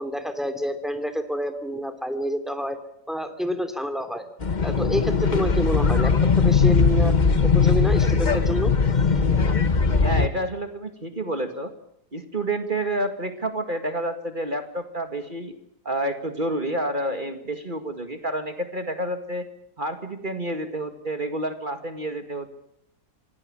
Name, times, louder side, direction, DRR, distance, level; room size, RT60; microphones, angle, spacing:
voice 1, 0.0-2.8 3.1-4.2 4.6-7.1 7.5-8.7, equal, ahead, 9 dB, 2.8 m, -28 dB
sound 1, 4.4-10.3, left 5 dB, 30° left, 1.2 m, -20 dB
voice 2, 9.9-11.7 12.1-15.5 15.9-19.5 19.8-22.5, right 1 dB, 30° right, 7 dB, 2.2 m, -29 dB
26.5 x 18.0 x 8.9 m, 0.74 s
omnidirectional pair, 1.7 m